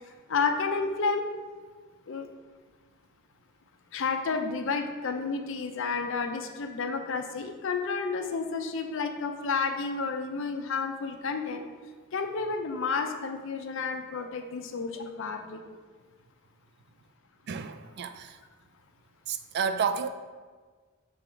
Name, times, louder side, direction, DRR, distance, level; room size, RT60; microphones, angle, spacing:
voice 1, 0.3-1.2 2.1-2.3 3.9-11.6 12.1-15.6, left 4 dB, 60° left, 6 dB, 0.5 m, -31 dB
voice 2, 17.5-18.4 19.3-20.1, right 6 dB, 50° right, 10 dB, 0.3 m, -30 dB
6.1 x 4.4 x 3.8 m, 1.5 s
head